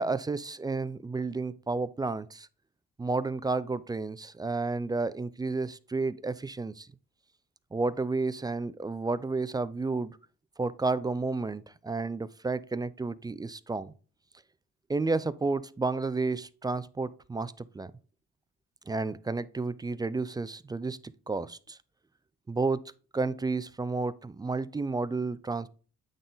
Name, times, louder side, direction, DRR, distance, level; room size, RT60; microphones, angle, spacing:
voice 1, 0.0-2.5 3.0-6.9 7.7-10.2 10.6-13.9 14.9-17.9 18.9-21.8 22.5-22.8 23.1-25.7, right 3 dB, 15° right, 0.3 m, -31 dB
8.8 x 3.8 x 3.9 m
cardioid pair, 90°, 30 cm